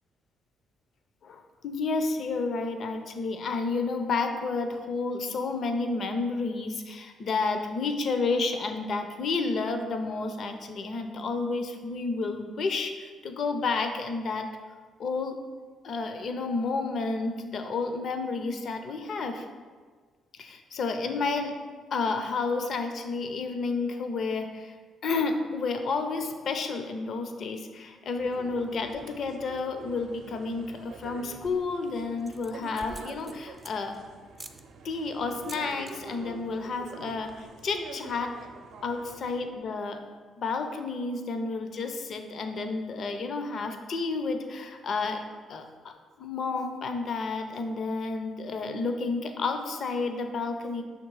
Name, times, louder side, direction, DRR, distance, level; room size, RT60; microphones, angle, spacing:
voice 1, 1.2-14.5 15.0-15.4 15.8-19.5 20.4-21.5 21.9-24.7 25.0-33.9 34.8-38.3 38.8-40.0 40.4-45.2 45.5-50.8, left 4 dB, 55° left, 6 dB, 0.5 m, -31 dB
sound 1, 28.2-39.4, right 3 dB, 75° right, 0.6 m, -46 dB
sound 2, 31.4-31.7 32.2-34.0 34.3-34.6 35.3-35.9 36.2-36.5 36.8-36.9 37.1-37.5, right 1 dB, 10° right, 0.4 m, -47 dB
6.0 x 3.6 x 4.7 m, 1.5 s
cardioid pair, 105°, 0 cm